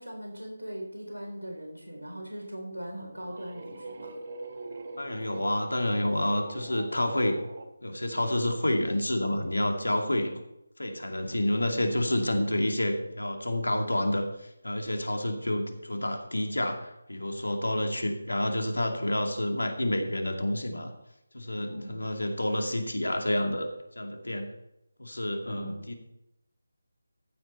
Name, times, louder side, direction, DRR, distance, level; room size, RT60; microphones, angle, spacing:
voice 1, 0.0-4.2 21.7-22.1 25.5-25.9, equal, 85° right, 1 dB, 4.1 m, -40 dB
sound 1, 2.8-7.7, right 3 dB, 45° right, 1.4 m, -42 dB
voice 2, 5.0-7.4 7.8-10.3 10.8-20.9 21.3-23.7 24.0-24.5 25.0-26.0, left 1 dB, 75° left, 4 dB, 2.3 m, -29 dB
14.5 x 8.3 x 4.4 m, 0.84 s
figure-of-eight pair, 155°, 0 cm